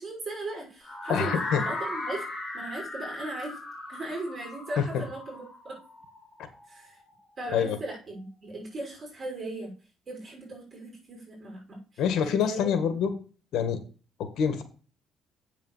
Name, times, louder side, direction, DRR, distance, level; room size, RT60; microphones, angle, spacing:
voice 1, 0.0-2.3 2.5-3.6 3.9-5.8 6.7-7.0 7.4-9.7 10.1-12.0 12.4-12.7, right 2 dB, 35° right, -2 dB, 6.5 m, -38 dB
sound 1, 0.8-6.8, left 2 dB, 15° left, 2.5 m, -37 dB
voice 2, 1.1-1.6 4.8-5.0 7.5-7.8 12.0-13.1 13.5-13.8 14.2-14.6, left 7 dB, 70° left, 10 dB, 1.8 m, -26 dB
8.4 x 7.2 x 7.4 m, 0.37 s
cardioid pair, 110°, 0 cm